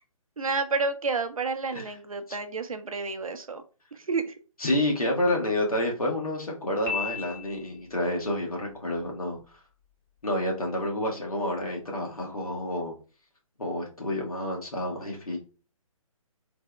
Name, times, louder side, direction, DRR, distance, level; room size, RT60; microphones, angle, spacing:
voice 1, 0.4-3.6 4.1-4.3, right 4 dB, 70° right, 8 dB, 0.6 m, -30 dB
voice 2, 4.6-9.4 10.2-12.9 13.6-15.4, left 1 dB, 80° left, -1 dB, 1.3 m, -29 dB
Piano, 6.9-8.0, left 6 dB, 15° left, 0.7 m, -34 dB
3.4 x 2.1 x 3.3 m, 0.35 s
figure-of-eight pair, 140°, 19 cm